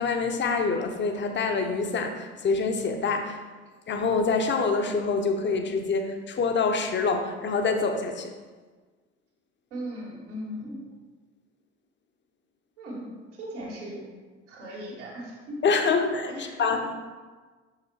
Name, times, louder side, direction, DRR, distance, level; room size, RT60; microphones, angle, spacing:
voice 1, 0.0-3.4 3.9-8.3 15.6-17.0, left 4 dB, 30° left, 6 dB, 0.9 m, -26 dB
voice 2, 9.7-10.8 12.8-14.0 14.5-15.6 16.3-16.6, equal, 75° right, -4 dB, 2.1 m, -38 dB
6.3 x 5.8 x 4.2 m, 1.4 s
figure-of-eight pair, 55°, 36 cm